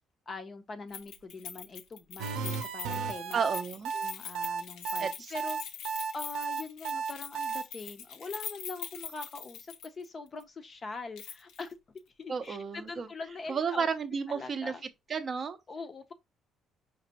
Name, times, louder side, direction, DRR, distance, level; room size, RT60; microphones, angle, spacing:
voice 1, 0.3-3.4 3.9-5.6 6.1-11.8 12.2-13.9 14.3-14.8 15.7-16.1, left 3 dB, 25° left, 0.5 m, -43 dB
Keys jangling, 0.9-10.1 10.4-10.5 11.2-11.7 12.0-12.1, left 7 dB, 85° left, 0.8 m, -43 dB
sound 1, 2.2-7.6, right 5 dB, 75° right, 0.7 m, -33 dB
voice 2, 3.3-3.9 5.0-5.3 12.3-13.1 13.5-14.7 15.1-15.6, right 6 dB, 30° right, 0.5 m, -32 dB
5.2 x 3.0 x 2.8 m
cardioid pair, 180°, 0 cm